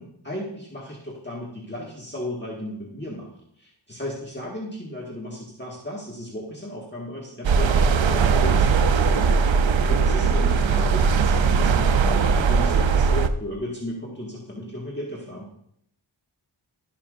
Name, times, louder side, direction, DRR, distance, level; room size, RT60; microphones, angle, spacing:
voice 1, 0.0-3.3 3.6-15.5, left 1 dB, 25° left, -4 dB, 1.8 m, -35 dB
sound 1, 7.4-13.3, right 5 dB, 80° right, 0.6 m, -19 dB
16.0 x 5.8 x 2.5 m, 0.72 s
wide cardioid pair, 60°, 45 cm